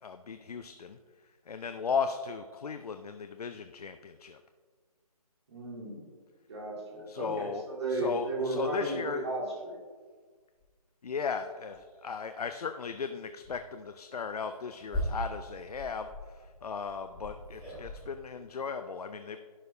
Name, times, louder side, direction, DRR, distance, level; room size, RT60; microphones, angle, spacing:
voice 1, 0.0-1.0 1.5-4.4 7.1-7.6 7.9-9.2 11.0-19.4, left 5 dB, 75° left, 8 dB, 0.4 m, -36 dB
voice 2, 5.5-6.1 6.5-9.8, right 1 dB, 45° right, -3 dB, 2.1 m, -34 dB
sound 1, 10.6-10.7 11.2-11.3 11.7-12.1 12.9-13.1 13.4-13.6 14.3-18.0, left 1 dB, 5° right, 1.8 m, -39 dB
11.0 x 4.9 x 2.6 m, 1.5 s
figure-of-eight pair, 150°, 20 cm